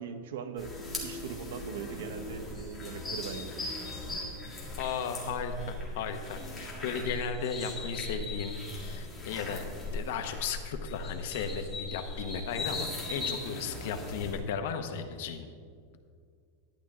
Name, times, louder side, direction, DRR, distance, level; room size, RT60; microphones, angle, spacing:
voice 1, 0.0-3.7, right 6 dB, 70° right, 8 dB, 0.9 m, -40 dB
sound 1, 0.6-14.4, left 2 dB, 10° left, 1.9 m, -39 dB
voice 2, 4.8-9.7 9.9-15.5, left 6 dB, 55° left, 7 dB, 0.9 m, -35 dB
11.5 x 10.0 x 3.6 m, 2.2 s
supercardioid pair, 180°, 0 cm